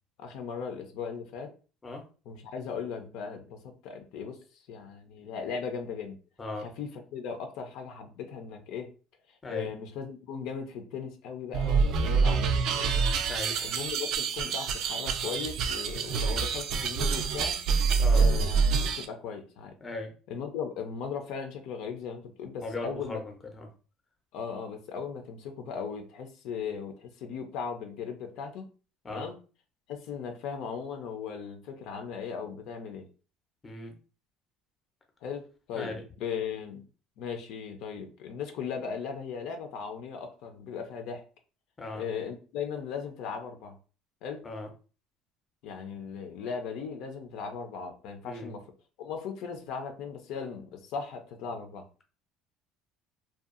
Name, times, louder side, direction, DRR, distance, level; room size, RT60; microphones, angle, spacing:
voice 1, 0.2-1.5 2.3-6.2 6.6-8.9 9.5-13.1 13.6-17.6 18.1-18.6 19.0-19.7 20.3-23.2 24.3-28.7 29.1-29.4 29.9-33.1 35.2-36.9 37.2-41.2 41.9-43.8 44.2-44.4 45.6-48.6 49.0-51.8, left 6 dB, 70° left, 6 dB, 0.5 m, -38 dB
sound 1, 11.5-19.1, right 5 dB, 60° right, 0.3 m, -26 dB
voice 2, 19.8-20.1 22.6-23.7 29.0-29.3 33.6-34.0 35.7-35.9 41.8-42.0 44.4-44.7 48.2-48.5, left 2 dB, 20° left, 3 dB, 0.6 m, -37 dB
2.7 x 2.3 x 2.4 m, 0.35 s
cardioid pair, 130°, 0 cm